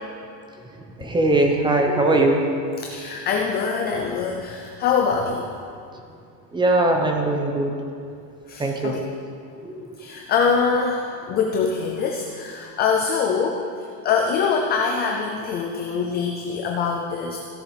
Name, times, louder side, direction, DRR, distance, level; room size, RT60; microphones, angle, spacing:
voice 1, 1.0-2.4 6.5-7.8 8.6-8.9 9.6-9.9, right 2 dB, 10° right, 2 dB, 0.8 m, -20 dB
voice 2, 2.8-5.5 8.5-9.0 10.0-13.6 14.0-17.4, left 5 dB, 20° left, 2 dB, 0.4 m, -24 dB
16.5 x 6.8 x 4.9 m, 2.4 s
supercardioid pair, 160°, 48 cm